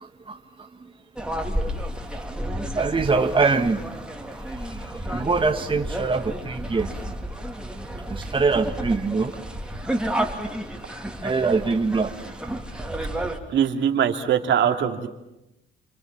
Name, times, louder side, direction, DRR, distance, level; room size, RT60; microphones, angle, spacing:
sound 1, 1.2-13.4, right 1 dB, 5° right, 3.3 m, -31 dB
voice 1, 2.8-3.8 4.2-4.3 5.1-6.9 8.1-9.3 11.2-12.1, right 4 dB, 25° right, 4 dB, 1.8 m, -23 dB
voice 2, 13.5-15.1, right 8 dB, 70° right, 5 dB, 2.7 m, -22 dB
29.0 x 25.5 x 7.4 m, 0.89 s
cardioid pair, 90°, 20 cm